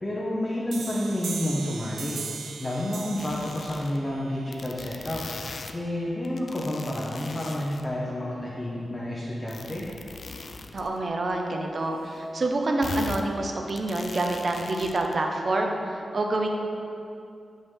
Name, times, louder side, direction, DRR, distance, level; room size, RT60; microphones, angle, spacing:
voice 1, 0.0-2.2 2.6-5.2 5.7-9.9, left 1 dB, 20° left, -5 dB, 0.8 m, -30 dB
sound 1, 0.7-6.1, right 5 dB, 85° right, 0.4 m, -40 dB
sound 2, 3.2-4.0 4.5-5.7 6.2-7.9 9.5-10.9 11.3-11.4 11.8-11.9 12.8-13.2 13.7-15.2, left 4 dB, 55° left, 0.4 m, -40 dB
voice 2, 10.7-16.5, right 2 dB, 45° right, 2 dB, 0.7 m, -27 dB
8.1 x 5.3 x 3.7 m, 2.6 s
wide cardioid pair, 140°, 0 cm